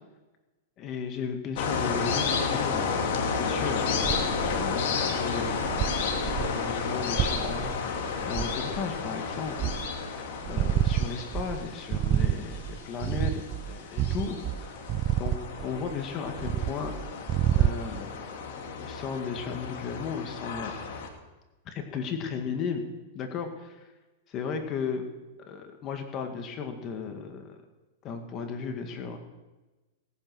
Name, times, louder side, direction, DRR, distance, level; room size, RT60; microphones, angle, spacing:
voice 1, 0.8-3.9 4.5-9.7 10.5-14.9 15.2-15.4 15.6-16.9 17.5-20.7 21.7-22.9 23.1-23.9 24.3-25.0 25.5-27.6 28.0-29.2, left 6 dB, 35° left, 5 dB, 2.0 m, -35 dB
sound 1, 1.6-21.1, left 5 dB, 65° left, 2.8 m, -32 dB
sound 2, 3.8-4.8 5.3-9.0 9.4-10.0 10.4-16.0 16.3-18.0, right 11 dB, 35° right, 0.5 m, -29 dB
19.0 x 9.5 x 6.3 m, 1.1 s
hypercardioid pair, 130°, 0 cm